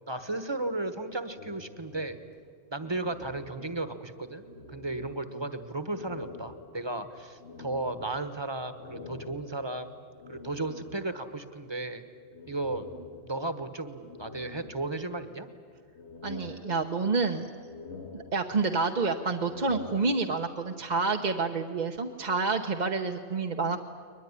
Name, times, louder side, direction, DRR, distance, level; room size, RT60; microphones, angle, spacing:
voice 1, 0.1-2.2 2.7-10.0 10.3-12.0 12.5-12.9 13.2-15.5, right 2 dB, 25° right, 10 dB, 1.3 m, -34 dB
sound 1, 1.3-4.1 4.4-5.5 5.9-11.3 12.3-13.6 14.0-15.3 15.7-17.2 17.6-18.9 19.3-20.6, left 4 dB, 90° left, 1.8 m, -47 dB
voice 2, 16.2-17.5 18.1-23.8, right 4 dB, 45° right, 3 dB, 1.0 m, -28 dB
22.0 x 21.0 x 9.8 m, 2.1 s
omnidirectional pair, 1.1 m